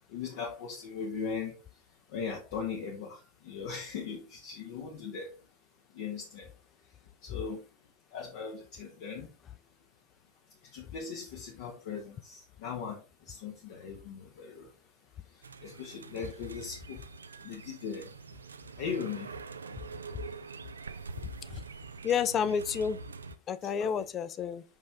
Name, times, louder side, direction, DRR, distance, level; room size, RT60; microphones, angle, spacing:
voice 1, 0.1-1.6 2.1-5.3 5.9-6.5 7.2-7.6 8.1-9.3 10.7-13.0 13.3-14.7 15.6-17.0 17.4-18.1 18.8-19.3 23.8-24.0, left 6 dB, 50° left, 1.1 m, -39 dB
sound 1, 15.4-23.4, right 5 dB, 75° right, 0.4 m, -45 dB
voice 2, 22.0-23.0 23.5-24.6, left 7 dB, 25° left, 0.5 m, -30 dB
5.6 x 5.3 x 3.4 m
figure-of-eight pair, 90°, 0 cm